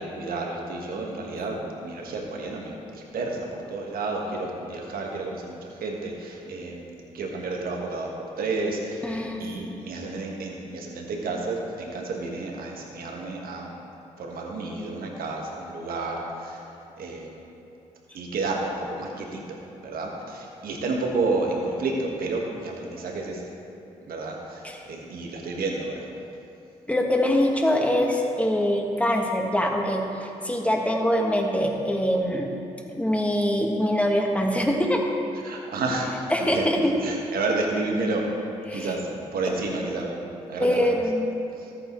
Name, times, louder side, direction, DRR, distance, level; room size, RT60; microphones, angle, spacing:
voice 1, 0.0-8.1 8.4-9.0 9.4-13.7 14.2-16.6 16.9-17.4 18.1-23.5 24.1-26.1 35.4-36.1 36.4-38.3 38.7-40.2 40.5-41.0 41.6-41.7, right 3 dB, 65° right, 0 dB, 1.6 m, -31 dB
voice 2, 9.0-9.6 24.6-24.8 26.9-32.5 32.9-35.0 36.3-36.9 38.7-38.9 39.4-39.5 40.6-41.2, left 1 dB, 10° left, 1 dB, 1.6 m, -24 dB
13.5 x 8.7 x 3.2 m, 2.8 s
hypercardioid pair, 45°, 16 cm